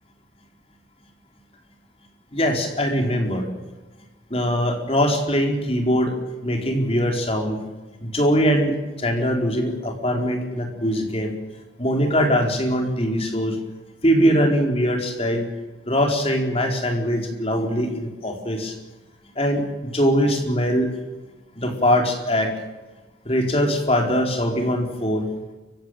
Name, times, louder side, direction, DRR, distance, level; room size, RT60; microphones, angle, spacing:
voice 1, 2.3-3.5 4.3-6.1 6.4-7.6 8.0-11.3 11.8-13.6 14.0-15.5 15.8-18.7 19.4-20.9 21.6-22.5 23.2-25.3, equal, 30° left, 2 dB, 4.4 m, -22 dB
29.0 x 16.0 x 9.2 m, 1.1 s
head